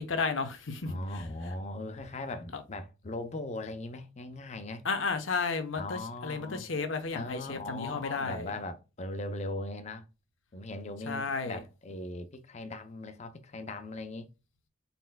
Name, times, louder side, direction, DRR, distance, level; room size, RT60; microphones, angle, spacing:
voice 1, 0.0-0.8 2.5-2.6 4.8-8.5 11.1-11.6, left 4 dB, 85° left, 0.9 m, -33 dB
voice 2, 0.9-4.8 5.7-6.7 7.1-10.1 10.5-14.3, left 2 dB, 35° left, 0.6 m, -39 dB
4.3 x 4.2 x 2.2 m
head